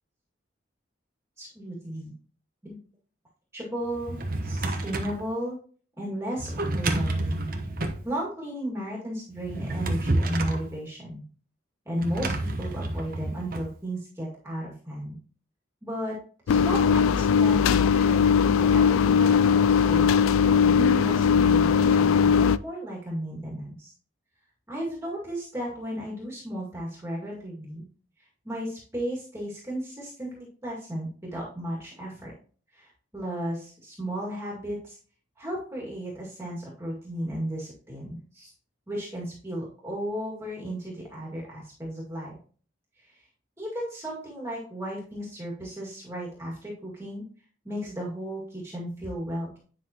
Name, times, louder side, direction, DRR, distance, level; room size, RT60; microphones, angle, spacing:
voice 1, 1.4-2.1 2.6-2.8 3.5-5.6 6.0-7.5 8.0-11.2 11.9-15.1 15.8-16.2 16.5-20.1 20.7-23.9 24.7-27.9 28.2-32.3 32.7-35.0 35.4-38.5 38.9-42.3 43.0-43.3 43.6-47.3 47.6-49.6, equal, 15° right, -4 dB, 2.1 m, -34 dB
Drawer open or close, 3.9-5.2 6.4-8.0 9.4-10.7 12.0-13.7, right 2 dB, 45° right, 1.0 m, -29 dB
sound 1, 16.5-22.6, left 6 dB, 90° left, 0.3 m, -20 dB
9.7 x 5.8 x 2.9 m, 0.42 s
head